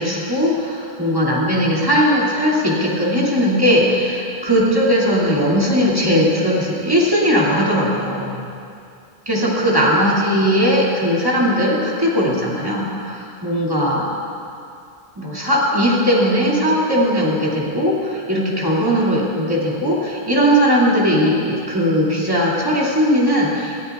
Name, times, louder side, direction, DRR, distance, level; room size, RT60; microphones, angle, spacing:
voice 1, 0.0-8.4 9.3-14.1 15.2-23.8, equal, 20° right, -6 dB, 2.3 m, -18 dB
19.5 x 14.0 x 2.3 m, 2.5 s
omnidirectional pair, 1.1 m